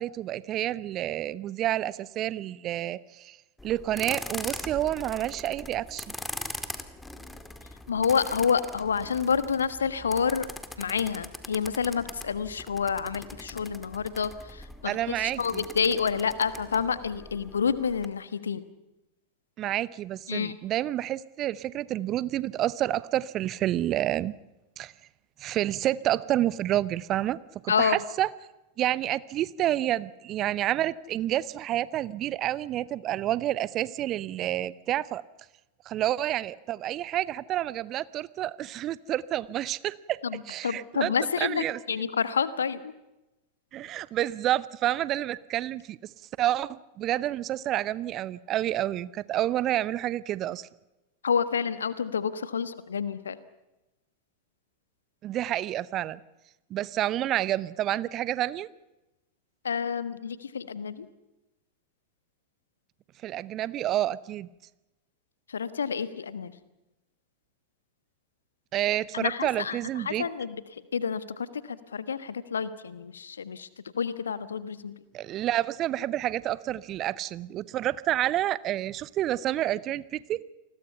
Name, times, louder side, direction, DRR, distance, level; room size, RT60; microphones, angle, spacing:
voice 1, 0.0-3.4 3.6-6.1 14.8-15.7 19.6-24.3 24.8-24.9 25.4-27.4 27.6-28.3 28.8-35.2 35.9-40.2 40.5-41.1 41.4-41.8 43.7-46.1 46.4-50.7 55.2-56.2 56.7-58.7 63.2-64.5 68.7-70.3 75.1-80.4, right 13 dB, 35° right, 20 dB, 0.7 m, -29 dB
sound 1, 3.6-18.1, left 1 dB, 5° left, 2.0 m, -42 dB
voice 2, 7.9-10.5 10.8-18.6 20.3-20.6 27.7-28.0 40.2-42.9 51.2-53.4 59.6-61.1 65.5-66.5 69.1-70.6 70.9-73.7 73.9-74.9, left 6 dB, 70° left, 14 dB, 1.4 m, -29 dB
29.0 x 21.0 x 5.7 m, 0.98 s
figure-of-eight pair, 90°, 0 cm